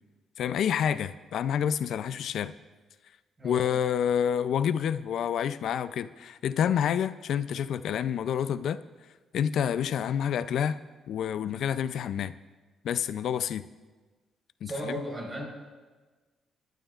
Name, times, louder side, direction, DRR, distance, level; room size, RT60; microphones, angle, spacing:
voice 1, 0.4-2.5 3.4-8.8 9.3-10.8 11.1-12.3 12.8-13.6 14.6-14.9, left 8 dB, 70° left, 13 dB, 0.4 m, -28 dB
voice 2, 14.7-15.5, right 1 dB, 25° right, -1 dB, 4.5 m, -35 dB
25.5 x 11.5 x 2.4 m, 1.3 s
cardioid pair, 90°, 0 cm